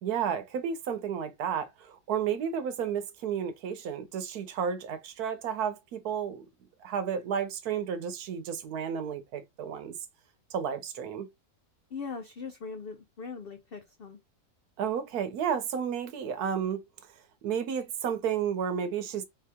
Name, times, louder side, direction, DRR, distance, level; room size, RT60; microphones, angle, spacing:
voice 1, 0.0-6.5 6.8-10.0 10.5-11.3 14.8-16.8 17.4-19.2, right 7 dB, 75° right, 1.2 m, -32 dB
voice 2, 11.9-14.2, left 5 dB, 80° left, 0.5 m, -40 dB
3.9 x 2.8 x 3.4 m
omnidirectional pair, 1.6 m